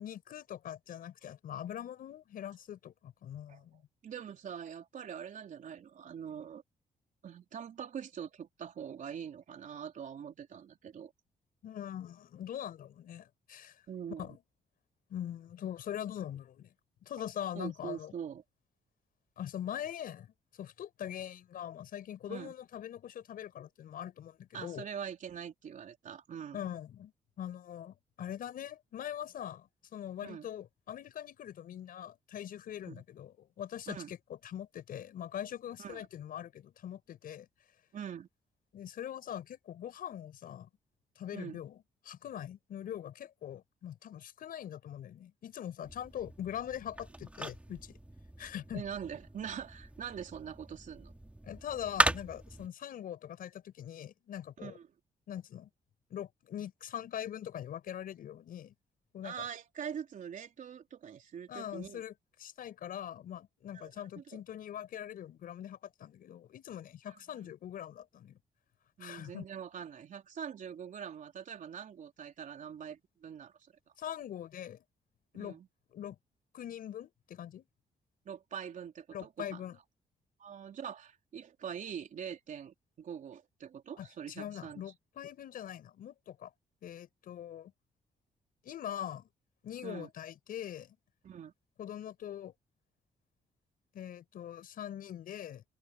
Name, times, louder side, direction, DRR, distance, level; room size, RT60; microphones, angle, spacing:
voice 1, 0.0-3.8 11.6-13.8 14.2-14.4 15.1-16.7 17.0-18.1 19.4-24.9 26.5-27.1 27.4-34.2 34.4-37.5 38.7-40.7 41.2-41.8 42.0-48.0 48.4-48.8 51.4-54.8 55.3-55.7 56.1-58.7 59.1-59.5 61.5-62.1 62.4-68.4 69.0-69.4 74.0-74.8 75.3-75.6 75.9-76.2 76.5-77.7 79.1-79.8 84.0-86.5 86.8-87.7 88.6-89.3 89.6-91.0 91.8-92.5 93.9-95.6, left 10 dB, 75° left, 6.5 m, -42 dB
voice 2, 4.0-6.6 7.2-11.1 13.9-14.4 17.5-18.4 22.3-22.5 24.5-26.7 30.2-30.5 32.9-33.0 33.9-34.2 35.8-36.1 37.9-38.3 41.3-41.6 48.7-51.1 54.6-54.9 59.2-62.0 63.7-64.4 67.1-67.2 69.0-73.7 75.4-75.7 78.3-79.6 80.4-84.8 89.8-90.1 91.2-91.5, right 8 dB, 60° right, 3.9 m, -43 dB
sound 1, 45.8-52.7, right 1 dB, 10° right, 3.3 m, -37 dB
open air
cardioid pair, 90°, 15 cm